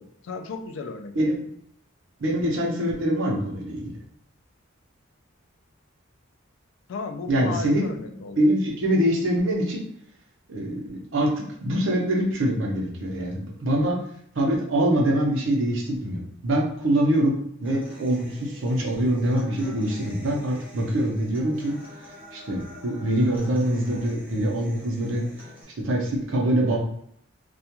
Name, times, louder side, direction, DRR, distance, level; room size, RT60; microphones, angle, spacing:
voice 1, 0.0-1.4 6.9-8.4, left 4 dB, 65° left, 6 dB, 0.3 m, -35 dB
voice 2, 2.2-3.9 7.3-7.8 8.4-9.8 10.5-11.3 11.6-14.0 14.3-21.8 22.3-25.2 25.8-26.8, right 1 dB, 65° right, -1 dB, 0.6 m, -24 dB
Human voice / Acoustic guitar, 17.6-25.6, left 1 dB, 10° right, 0.6 m, -46 dB
2.3 x 2.2 x 2.8 m, 0.67 s
head